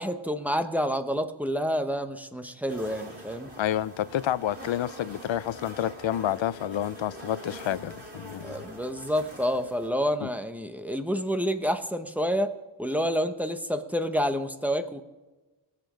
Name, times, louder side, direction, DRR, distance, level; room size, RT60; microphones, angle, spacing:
voice 1, 0.0-3.5 8.4-15.0, equal, 5° right, 0.9 m, -28 dB
sound 1, 2.7-9.9, right 1 dB, 30° right, 3.5 m, -44 dB
voice 2, 3.6-8.6 10.2-10.3, left 11 dB, 75° left, 0.5 m, -29 dB
21.5 x 7.5 x 5.1 m
wide cardioid pair, 105°, 47 cm